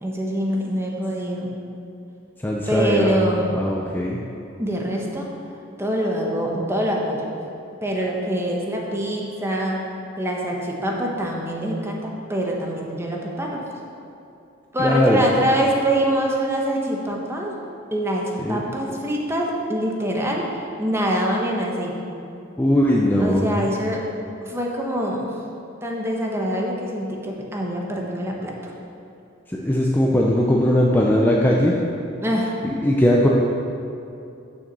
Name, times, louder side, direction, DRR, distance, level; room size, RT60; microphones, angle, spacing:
voice 1, 0.0-1.5 2.7-3.5 4.6-5.3 5.8-7.3 7.8-9.8 10.2-13.6 14.7-17.5 17.9-20.5 20.8-22.0 23.2-24.0 24.5-25.3 25.8-28.5 32.2-32.5, equal, 15° right, -1 dB, 1.1 m, -24 dB
voice 2, 2.4-3.3 3.5-4.2 14.8-15.2 18.4-18.6 22.6-23.5 29.5-31.8 32.6-33.3, equal, 10° left, -2 dB, 0.5 m, -19 dB
6.9 x 6.3 x 6.8 m, 2.6 s
head